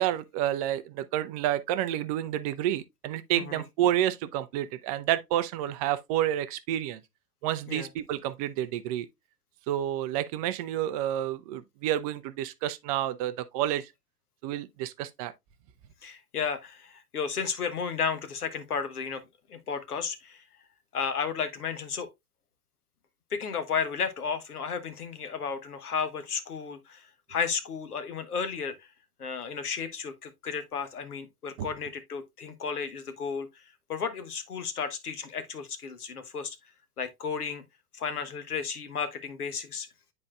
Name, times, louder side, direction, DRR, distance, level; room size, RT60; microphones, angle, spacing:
voice 1, 0.0-7.0 7.4-9.1 9.7-13.9 14.4-15.3 31.6-31.7, right 12 dB, 25° right, 0.4 m, -29 dB
voice 2, 16.0-19.2 19.5-20.4 20.9-22.1 23.3-28.9 29.2-33.6 33.9-36.6 37.0-37.6 37.9-39.9, left 6 dB, 75° left, 1.2 m, -33 dB
9.6 x 4.3 x 2.3 m
figure-of-eight pair, 95°, 46 cm